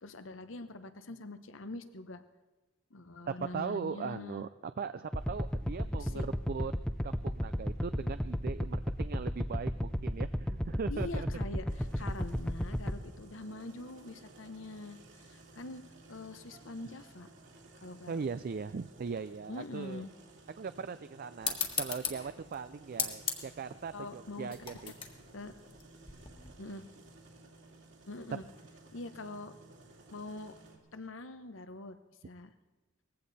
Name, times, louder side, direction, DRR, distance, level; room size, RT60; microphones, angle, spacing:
voice 1, 0.0-2.2 2.9-4.5 6.0-6.2 10.9-15.8 16.1-17.3 17.8-18.2 19.5-20.1 23.9-24.5 25.3-25.5 26.6-26.9 28.1-28.4 28.9-29.5 30.1-30.6 30.9-32.0 32.2-32.5, left 2 dB, 75° left, 10 dB, 1.0 m, -44 dB
voice 2, 3.3-6.7 7.0-11.3 12.0-12.1 18.1-20.0 20.6-24.9, right 5 dB, 50° right, 12 dB, 0.4 m, -39 dB
sound 1, 5.1-13.0, equal, 5° left, 0.5 m, -33 dB
sound 2, 11.7-30.8, right 2 dB, 65° right, 2.6 m, -56 dB
sound 3, 21.4-26.5, left 6 dB, 25° left, 1.6 m, -38 dB
19.5 x 15.5 x 4.2 m, 1.2 s
head